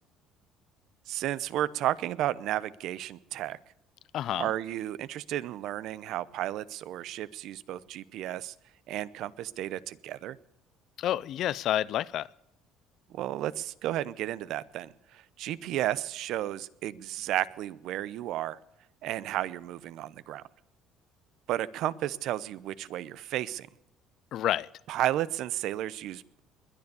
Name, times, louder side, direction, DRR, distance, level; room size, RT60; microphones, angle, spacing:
voice 1, 1.1-3.6 4.4-8.5 8.9-10.4 13.1-18.6 19.0-20.4 21.5-23.7 24.9-26.4, right 13 dB, 70° right, 0.7 m, -33 dB
voice 2, 4.1-4.5 11.0-12.3 24.3-24.7, left 12 dB, 60° left, 0.5 m, -29 dB
21.0 x 9.7 x 6.8 m
cardioid pair, 125°, 0 cm